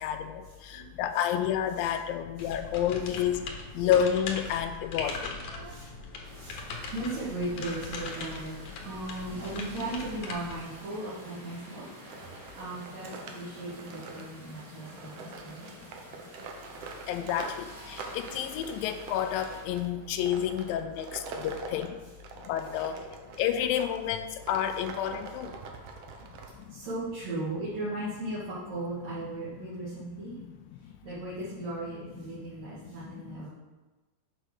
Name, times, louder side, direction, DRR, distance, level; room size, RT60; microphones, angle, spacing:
voice 1, 0.0-5.4 14.2-15.3 17.1-22.0 22.4-23.0 23.4-25.6 30.4-30.5 30.8-30.9 32.3-33.5, left 9 dB, 85° left, 8 dB, 2.3 m, -30 dB
sound 1, 2.4-10.6, left 4 dB, 65° left, 2.4 m, -40 dB
voice 2, 5.4-5.9 6.3-6.6 6.9-8.5 8.8-11.8 12.2-16.0 16.3-16.4 22.9-23.0 25.5-25.7 26.7-30.3 31.0-33.5, right 2 dB, 50° right, -11 dB, 3.3 m, -37 dB
sound 2, 6.2-19.6, equal, 20° right, 1.7 m, -50 dB
sound 3, 12.0-24.0 24.4-26.9, right 4 dB, 80° right, 1.4 m, -44 dB
8.1 x 5.1 x 6.3 m, 1.2 s
omnidirectional pair, 4.1 m